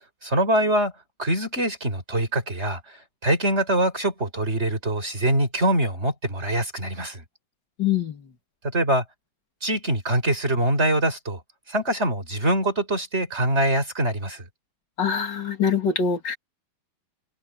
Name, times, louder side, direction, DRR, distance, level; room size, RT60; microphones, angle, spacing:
voice 1, 0.2-0.9 1.2-2.8 3.2-7.2 8.7-9.0 9.6-11.4 11.7-14.5, right 1 dB, 30° right, 5.2 m, -23 dB
voice 2, 7.8-8.1 15.0-16.4, left 7 dB, 55° left, 2.8 m, -24 dB
omnidirectional pair, 2.3 m